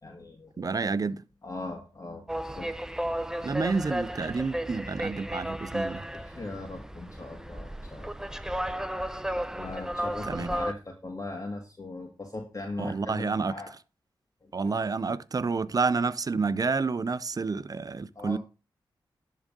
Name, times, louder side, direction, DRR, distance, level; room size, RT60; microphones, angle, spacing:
voice 1, 0.0-0.9 1.4-2.2 2.5-2.7 6.1-8.4 9.5-13.7 14.4-15.2 18.2-18.4, left 2 dB, 40° left, 1.8 m, -40 dB
voice 2, 0.6-1.2 3.4-6.0 10.3-10.5 12.8-13.5 14.5-18.4, right 4 dB, 45° right, 0.6 m, -29 dB
sound 1, 2.3-10.7, equal, 5° right, 0.7 m, -34 dB
11.0 x 3.8 x 5.3 m
cardioid pair, 55°, 9 cm